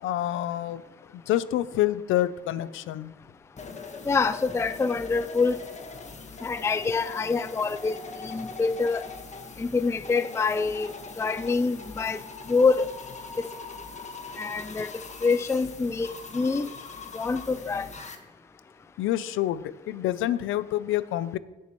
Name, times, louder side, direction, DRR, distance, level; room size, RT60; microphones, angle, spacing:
voice 1, 0.0-0.8 1.1-3.1 19.0-21.4, left 13 dB, 85° left, 0.5 m, -27 dB
sound 1, 3.6-18.2, left 4 dB, 35° left, 1.4 m, -41 dB
voice 2, 4.1-5.6 6.4-8.0 8.2-9.0 9.6-12.2 12.5-12.9 14.4-14.9 15.2-16.7 17.1-17.9, left 4 dB, 15° left, 0.4 m, -26 dB
17.5 x 7.1 x 3.1 m
cardioid pair, 90°, 20 cm